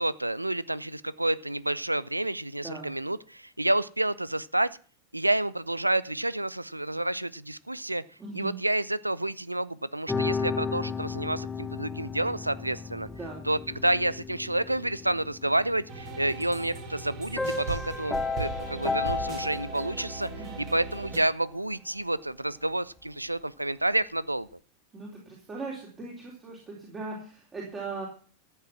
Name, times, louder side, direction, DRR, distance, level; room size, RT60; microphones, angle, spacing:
voice 1, 0.0-4.8 5.1-8.0 8.3-13.1 13.5-20.3 20.6-24.5, right 1 dB, 85° right, 20 dB, 0.5 m, -29 dB
voice 2, 8.2-8.6 13.2-13.4 20.4-20.7 24.9-28.1, right 3 dB, 20° right, -3 dB, 3.8 m, -39 dB
sound 1, 10.1-16.7 17.3-20.4, left 4 dB, 10° left, 1.2 m, -34 dB
sound 2, 15.9-21.2, right 4 dB, 40° right, 4.4 m, -38 dB
14.0 x 7.9 x 6.0 m, 0.42 s
figure-of-eight pair, 90°, 0 cm